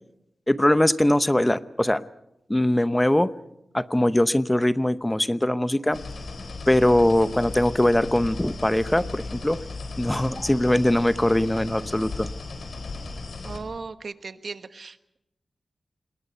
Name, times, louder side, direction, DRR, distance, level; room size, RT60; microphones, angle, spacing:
voice 1, 0.5-2.0 2.5-3.3 3.7-6.0 6.7-9.6 10.0-12.3, left 1 dB, 15° left, 13 dB, 0.8 m, -21 dB
sound 1, 5.9-13.6, left 3 dB, 85° left, 4.1 m, -36 dB
voice 2, 13.4-15.2, right 4 dB, 70° right, 10 dB, 1.2 m, -37 dB
26.5 x 21.5 x 5.6 m, 0.86 s
wide cardioid pair, 80°, 0 cm